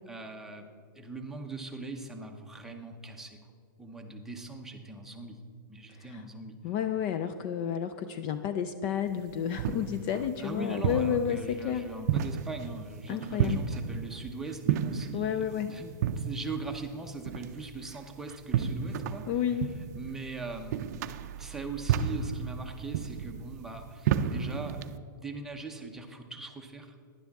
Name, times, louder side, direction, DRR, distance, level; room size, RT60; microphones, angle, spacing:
voice 1, 0.1-0.7 0.9-3.4 3.8-5.4 5.7-6.6 10.4-19.3 19.9-21.1 21.4-27.0, right 3 dB, 5° right, 2 dB, 0.8 m, -41 dB
voice 2, 6.6-11.9 13.1-13.7 15.1-15.7 19.3-19.7, left 9 dB, 35° left, 10 dB, 0.4 m, -31 dB
sound 1, 9.1-25.0, right 8 dB, 50° right, 0.5 m, -33 dB
11.5 x 10.5 x 3.6 m, 2.2 s
hypercardioid pair, 155°, 11 cm